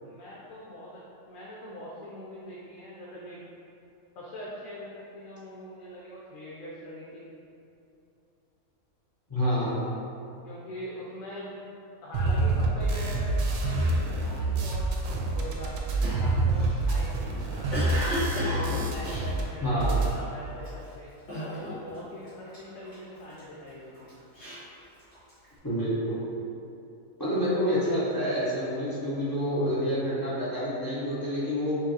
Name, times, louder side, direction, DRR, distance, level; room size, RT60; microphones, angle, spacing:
voice 1, 0.0-3.4 4.2-7.2 10.4-11.6 12.0-17.9 18.5-21.1 21.5-24.1, left 1 dB, 75° left, -6 dB, 1.0 m, -42 dB
voice 2, 9.3-9.8 19.6-20.0 25.6-26.2 27.2-31.8, equal, 20° left, -10 dB, 0.6 m, -28 dB
sound 1, 12.1-19.4 19.7-20.1, right 2 dB, 75° right, 0.9 m, -27 dB
Cough, 16.0-20.1 20.6-20.9 21.3-22.0 22.2-23.4 23.9-25.5, equal, 50° left, 1.6 m, -34 dB
5.4 x 2.5 x 2.7 m, 2.7 s
omnidirectional pair, 1.5 m